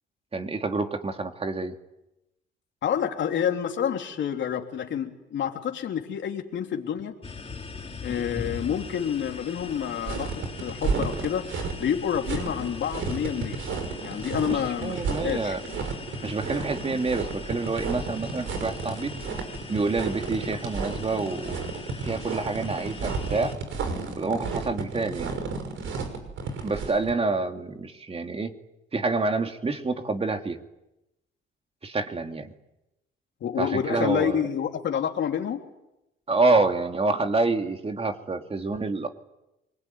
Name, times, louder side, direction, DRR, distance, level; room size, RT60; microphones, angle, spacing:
voice 1, 0.3-1.7 14.5-15.6 16.2-19.1 19.7-21.7 22.0-23.5 24.2-25.3 26.6-28.5 28.9-30.6 31.8-32.5 33.6-34.4 36.3-39.1, right 3 dB, 30° right, 5 dB, 2.8 m, -27 dB
voice 2, 2.8-7.1 8.0-10.3 10.6-13.6 14.0-15.8 33.4-35.6, left 8 dB, 70° left, 4 dB, 3.4 m, -28 dB
sound 1, 7.2-23.5, left 4 dB, 30° left, 4.0 m, -41 dB
sound 2, 10.0-27.1, right 4 dB, 75° right, 6.1 m, -32 dB
28.5 x 21.5 x 9.6 m, 0.91 s
cardioid pair, 90°, 20 cm